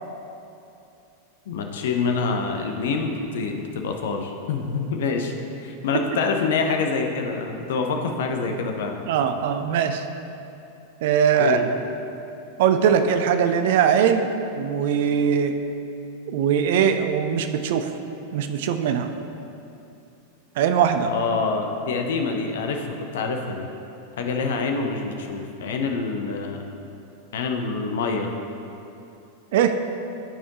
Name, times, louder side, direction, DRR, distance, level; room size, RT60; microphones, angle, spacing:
voice 1, 1.5-9.0 11.4-11.7 21.1-22.8 23.1-23.7 24.2-26.6 27.3-28.3, left 4 dB, 60° left, 4 dB, 0.7 m, -26 dB
voice 2, 9.1-10.0 11.0-11.6 12.6-15.6 16.3-17.9 18.3-19.1 20.6-21.1 29.5-29.8, right 7 dB, 55° right, 8 dB, 0.4 m, -21 dB
12.5 x 4.2 x 2.9 m, 2.8 s
figure-of-eight pair, 90°, 0 cm